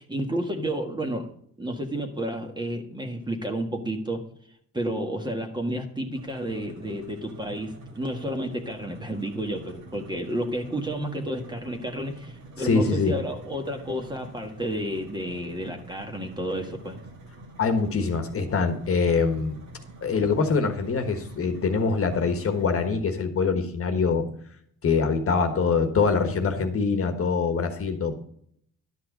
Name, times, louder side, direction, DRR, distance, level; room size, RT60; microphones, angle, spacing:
voice 1, 0.0-1.3 1.6-4.2 4.7-17.0, right 1 dB, 15° right, 3 dB, 1.6 m, -31 dB
sound 1, 6.1-22.9, right 1 dB, 60° right, 2.6 m, -46 dB
voice 2, 12.6-13.2 17.6-19.6 20.0-24.3 24.8-28.1, left 5 dB, 45° left, 6 dB, 1.4 m, -24 dB
12.0 x 5.9 x 5.1 m, 0.67 s
cardioid pair, 105°, 32 cm